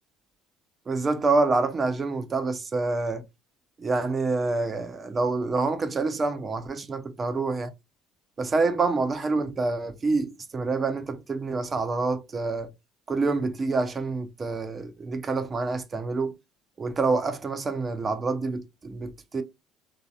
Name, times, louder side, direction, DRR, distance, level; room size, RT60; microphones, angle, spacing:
voice 1, 0.9-3.2 3.8-7.7 8.4-12.7 13.1-16.3 16.8-19.4, right 3 dB, 30° right, 0.7 m, -27 dB
3.2 x 2.7 x 2.4 m
figure-of-eight pair, 60°, 0 cm